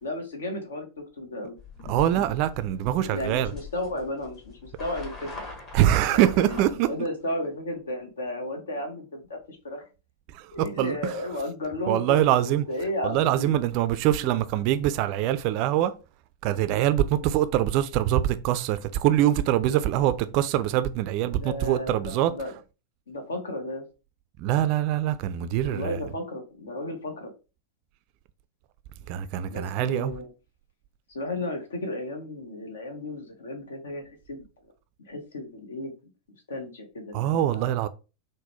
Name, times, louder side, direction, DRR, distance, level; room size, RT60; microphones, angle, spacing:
voice 1, 0.0-1.6 3.0-5.4 6.1-9.8 10.5-12.2 12.4-13.6 14.2-14.3 17.1-17.3 21.3-22.5 23.1-23.8 25.6-27.3 29.5-30.3 31.1-34.4 35.1-36.1 36.5-37.7, left 1 dB, 65° left, 0.9 m, -34 dB
sound 1, 1.6-6.7, left 4 dB, 30° left, 1.5 m, -41 dB
voice 2, 1.9-3.5 5.7-6.9 10.3-11.1 11.9-12.7 13.0-15.9 16.4-22.3 24.4-26.0 29.1-30.1 37.1-37.9, right 12 dB, 45° right, 0.3 m, -24 dB
3.8 x 2.1 x 3.0 m
figure-of-eight pair, 90°, 0 cm